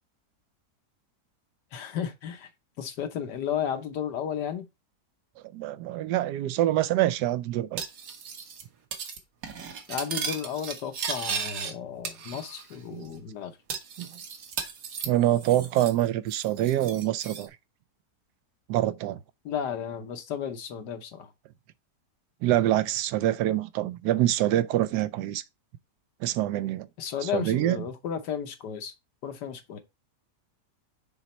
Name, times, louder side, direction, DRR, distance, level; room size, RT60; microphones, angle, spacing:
voice 1, 1.7-2.5 2.8-4.7 9.9-13.6 19.4-21.3 27.0-28.9 29.2-29.8, left 8 dB, 85° left, 1.6 m, -33 dB
voice 2, 5.5-7.8 12.9-13.0 14.0-14.1 15.1-17.5 18.7-19.2 22.4-25.4 26.2-26.9 27.3-27.8, right 13 dB, 80° right, 1.2 m, -25 dB
Cutlery silverware, 7.8-8.6 8.9-9.2 9.4-11.7 12.0-12.8 13.0-13.1 13.7-16.0 16.3-17.5, right 6 dB, 60° right, 1.4 m, -36 dB
6.3 x 3.9 x 4.3 m
omnidirectional pair, 1.8 m